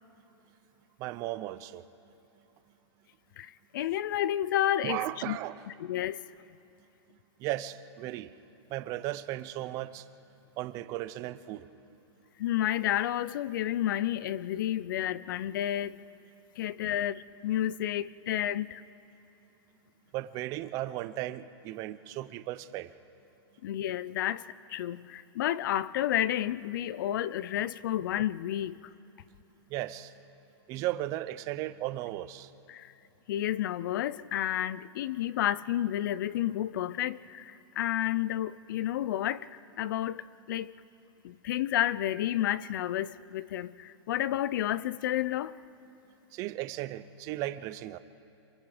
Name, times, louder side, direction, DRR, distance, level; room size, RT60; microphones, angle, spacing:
voice 1, 1.0-1.9 4.8-5.6 7.4-8.3 8.7-10.0 10.6-11.7 20.1-22.9 29.7-30.1 30.7-32.5 46.3-48.0, right 15 dB, 25° right, 0.5 m, -36 dB
voice 2, 3.4-5.4 5.8-6.2 12.4-16.0 16.6-18.8 23.6-24.4 24.7-28.8 32.7-32.9 33.3-40.7 41.2-45.6, left 12 dB, 50° left, 0.5 m, -31 dB
27.5 x 23.0 x 5.0 m
hypercardioid pair, 165°, 14 cm